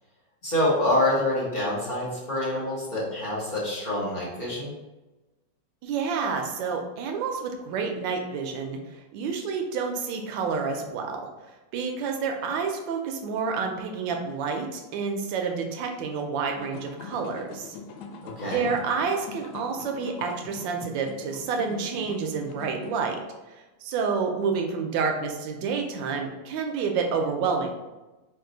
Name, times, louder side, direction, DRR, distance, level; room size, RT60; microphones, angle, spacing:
voice 1, 0.4-4.7 18.2-18.7, left 1 dB, 35° left, -7 dB, 0.9 m, -26 dB
voice 2, 5.8-11.2 11.5-17.8 18.5-23.2 23.5-27.7, right 5 dB, 85° right, 3 dB, 1.3 m, -29 dB
sound 1, 16.6-23.1, left 5 dB, 70° left, 1.0 m, -42 dB
4.4 x 2.4 x 3.8 m, 1.1 s
omnidirectional pair, 2.0 m